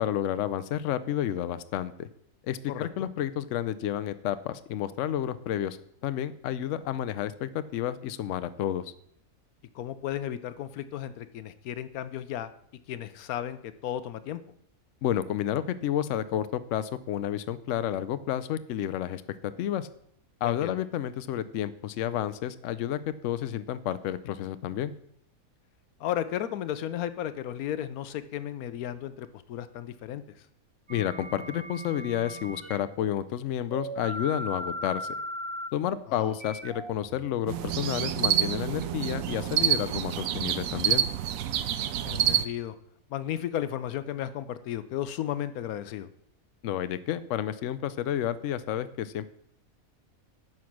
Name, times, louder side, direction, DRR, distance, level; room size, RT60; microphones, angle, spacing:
voice 1, 0.0-2.1 2.4-5.8 6.0-8.9 15.0-19.2 19.6-19.9 20.4-24.9 30.9-35.1 35.7-41.0 46.6-49.3, left 11 dB, 65° left, 13 dB, 0.9 m, -30 dB
voice 2, 2.7-3.1 9.7-12.5 12.9-14.4 20.4-20.7 26.0-30.5 36.1-36.4 42.0-42.8 43.1-46.1, left 11 dB, 90° left, 13 dB, 1.1 m, -34 dB
sound 1, 30.9-32.8 33.7-37.7, equal, 35° right, 0.5 m, -38 dB
sound 2, 37.5-42.4, right 11 dB, 75° right, 1.0 m, -27 dB
9.5 x 6.2 x 5.9 m, 0.69 s
omnidirectional pair, 1.5 m